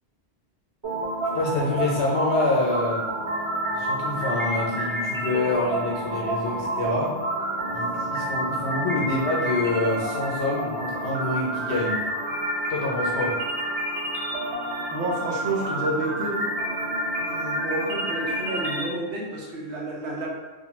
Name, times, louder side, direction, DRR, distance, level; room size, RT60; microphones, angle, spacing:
sound 1, 0.8-18.8, right 1 dB, 30° right, 0.8 m, -29 dB
voice 1, 1.3-3.0 3.7-7.2 7.7-12.0 12.7-13.4, left 2 dB, 80° left, -3 dB, 0.8 m, -26 dB
voice 2, 14.9-16.4 16.8-20.3, right 2 dB, 85° right, -2 dB, 1.0 m, -30 dB
2.6 x 2.2 x 2.9 m, 1.2 s
omnidirectional pair, 1.1 m